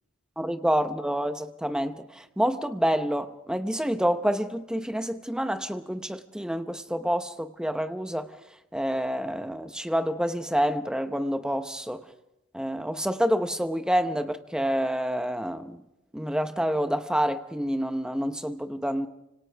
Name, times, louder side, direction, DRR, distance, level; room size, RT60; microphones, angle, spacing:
voice 1, 0.4-8.3 8.7-12.0 12.5-15.8 16.1-19.1, equal, 5° right, 0.9 m, -28 dB
29.5 x 26.0 x 3.5 m
head